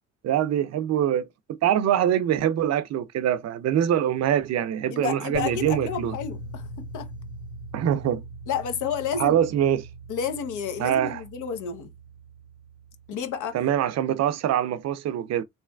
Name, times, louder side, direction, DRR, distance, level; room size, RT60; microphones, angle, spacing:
voice 1, 0.2-6.1 7.7-8.2 9.2-9.9 10.8-11.2 13.5-15.4, right 10 dB, 60° right, 0.5 m, -24 dB
voice 2, 4.9-7.1 8.5-9.4 10.1-11.9 13.1-13.6, left 7 dB, 80° left, 0.8 m, -31 dB
sound 1, 5.3-13.5, equal, 50° left, 0.7 m, -40 dB
3.2 x 3.0 x 2.2 m
cardioid pair, 90°, 30 cm